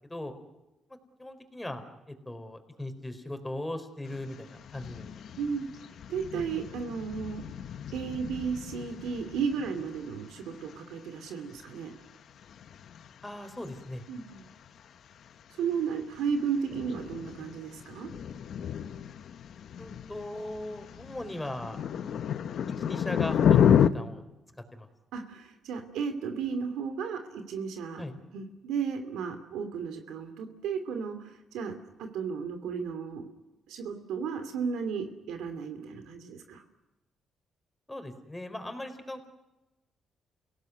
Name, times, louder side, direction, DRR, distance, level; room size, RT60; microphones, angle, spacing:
voice 1, 1.2-5.2 13.2-14.0 19.8-21.8 22.8-24.2 24.8-24.9 28.0-28.1 37.9-39.3, left 1 dB, 10° left, 7 dB, 4.3 m, -38 dB
sound 1, 4.0-23.9, left 9 dB, 65° left, 1.0 m, -32 dB
voice 2, 5.4-5.7 6.1-7.4 7.9-11.9 14.1-14.5 15.6-18.1 25.1-28.0 28.3-33.3 33.7-36.6, right 6 dB, 85° right, 7 dB, 2.7 m, -34 dB
29.0 x 17.5 x 9.5 m, 1.0 s
cardioid pair, 90°, 0 cm